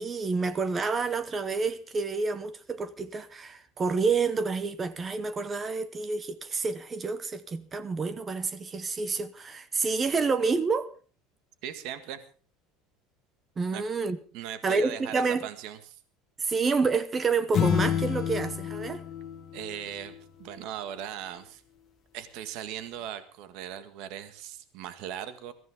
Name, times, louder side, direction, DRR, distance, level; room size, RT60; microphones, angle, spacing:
voice 1, 0.0-10.9 13.6-14.2 14.6-15.5 16.4-19.0, right 4 dB, 15° right, 0.7 m, -28 dB
voice 2, 11.6-12.2 13.7-13.8 14.3-16.0 19.5-20.1 20.4-21.6 22.1-25.5, right 10 dB, 50° right, 1.7 m, -38 dB
sound 1, 17.5-20.2, left 9 dB, 30° left, 1.4 m, -29 dB
22.0 x 14.5 x 3.7 m
cardioid pair, 175°, 0 cm